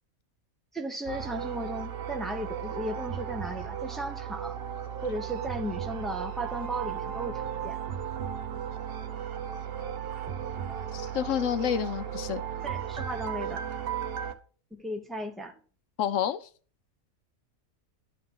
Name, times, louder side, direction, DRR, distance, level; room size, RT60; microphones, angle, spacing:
voice 1, 0.7-4.6 5.0-7.8 12.6-13.7 14.7-15.6, right 1 dB, ahead, 0.5 m, -35 dB
sound 1, 1.1-14.3, right 8 dB, 50° right, 0.8 m, -35 dB
voice 2, 10.9-12.4 16.0-16.5, left 9 dB, 70° left, 0.9 m, -29 dB
11.5 x 3.9 x 3.7 m
omnidirectional pair, 1.5 m